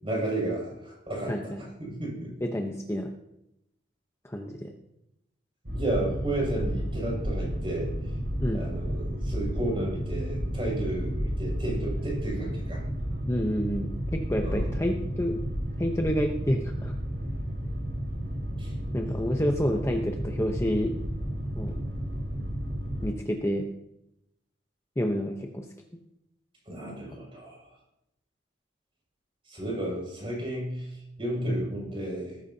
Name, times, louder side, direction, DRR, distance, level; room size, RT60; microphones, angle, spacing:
voice 1, 0.0-2.4 5.7-7.9 8.5-12.8 14.4-14.7 18.6-18.7 26.7-27.7 29.4-32.4, right 1 dB, 30° right, -3 dB, 6.5 m, -33 dB
voice 2, 1.3-1.6 2.4-3.1 4.2-4.7 8.4-8.6 13.3-15.4 15.8-16.9 18.9-20.9 21.5-21.8 23.0-23.7 25.0-25.7 31.5-31.6, equal, 15° left, 3 dB, 0.8 m, -29 dB
Boat Water vehicle, 5.6-23.1, equal, 65° right, 4.9 m, -32 dB
18.0 x 14.5 x 2.8 m, 0.83 s
head